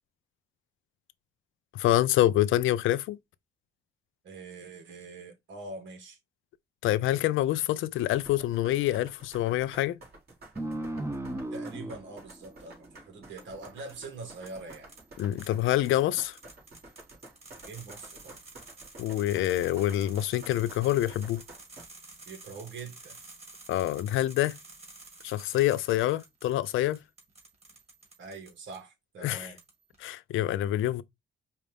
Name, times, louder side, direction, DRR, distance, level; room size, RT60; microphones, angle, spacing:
voice 1, 1.7-3.2 6.8-10.0 15.2-16.4 19.0-21.4 23.7-24.6 25.2-27.0 29.2-29.5 30.0-31.0, left 14 dB, 80° left, 0.5 m, -26 dB
voice 2, 4.2-6.2 11.5-14.9 17.6-18.4 22.2-23.2 28.2-29.6, right 3 dB, 70° right, 1.5 m, -44 dB
sound 1, 8.0-21.9, right 2 dB, 55° right, 3.0 m, -51 dB
sound 2, 10.5-13.7, right 1 dB, 15° right, 0.9 m, -37 dB
sound 3, 12.3-12.7 13.4-28.8 29.2-30.0, right 3 dB, 30° right, 2.4 m, -51 dB
5.2 x 2.5 x 3.4 m
cardioid pair, 90°, 20 cm